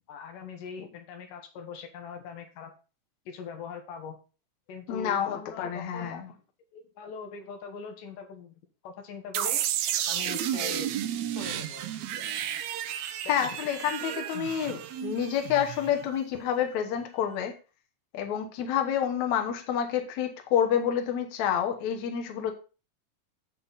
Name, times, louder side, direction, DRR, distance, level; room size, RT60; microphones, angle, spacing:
voice 1, 0.1-2.7 3.3-4.2 4.7-6.3 6.7-9.6 10.1-10.9 11.3-11.9 12.2-12.3 13.2-13.5, left 5 dB, 85° left, 5 dB, 2.9 m, -42 dB
voice 2, 4.9-6.3 13.3-17.5 18.1-22.5, left 9 dB, 65° left, 5 dB, 2.3 m, -28 dB
sound 1, 9.3-16.1, right 11 dB, 75° right, 1.7 m, -32 dB
7.8 x 7.7 x 4.0 m, 0.33 s
omnidirectional pair, 3.7 m